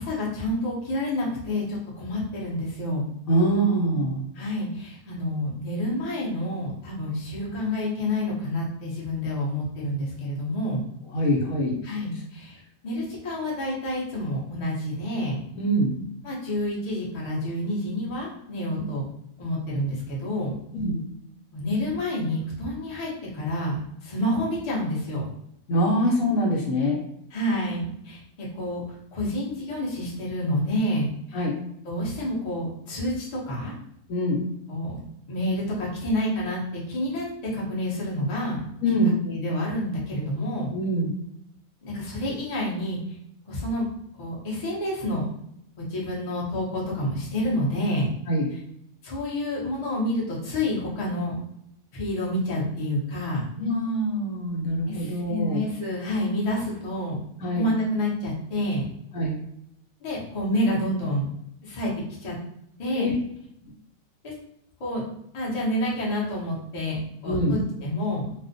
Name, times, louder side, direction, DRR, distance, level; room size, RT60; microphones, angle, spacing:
voice 1, 0.0-3.1 4.4-10.8 11.8-12.6 12.8-15.4 16.2-19.0 19.4-20.6 21.5-25.2 27.3-28.8 29.1-31.4 31.8-33.7 34.7-35.0 35.3-38.6 39.3-40.7 41.8-43.0 43.5-43.8 44.2-45.3 45.8-48.1 49.0-51.3 51.9-53.4 54.9-57.2 57.6-58.8 60.0-61.3 61.6-61.9 62.2-62.3 62.8-63.1 64.2-64.3 64.8-65.0 65.3-67.0 67.2-68.3, left 1 dB, 40° left, -5 dB, 0.6 m, -28 dB
voice 2, 3.3-4.2 11.1-11.8 15.6-15.9 20.7-21.0 25.7-27.0 31.3-31.5 34.1-34.4 38.8-39.2 40.7-41.1 48.3-48.5 53.6-55.6 57.4-57.7 59.1-59.4 62.9-63.1 67.2-67.6, equal, 75° left, -1 dB, 1.0 m, -24 dB
2.4 x 2.1 x 2.5 m, 0.76 s
omnidirectional pair, 1.5 m